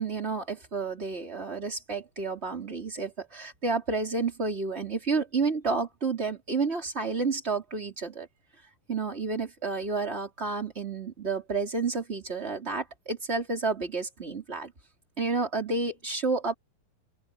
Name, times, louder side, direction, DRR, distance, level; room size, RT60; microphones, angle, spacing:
voice 1, 0.0-8.3 8.9-14.7 15.2-16.5, right 4 dB, 15° right, 3.6 m, -30 dB
open air
omnidirectional pair, 4.2 m